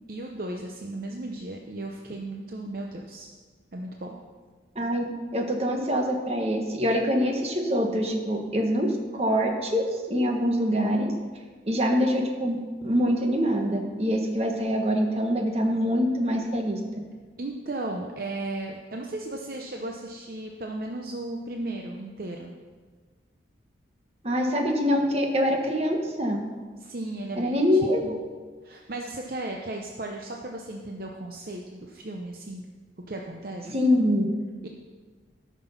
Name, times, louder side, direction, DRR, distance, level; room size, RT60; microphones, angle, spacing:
voice 1, 0.1-3.3 3.7-4.2 17.4-22.5 26.8-28.2 28.6-32.6 33.1-33.7 34.6-34.7, right 2 dB, 50° right, 1 dB, 0.7 m, -35 dB
voice 2, 5.3-11.1 11.7-12.6 12.8-16.8 24.2-26.4 27.4-28.2 33.6-34.3, equal, 35° right, 2 dB, 1.3 m, -24 dB
13.5 x 6.1 x 5.8 m, 1.5 s
head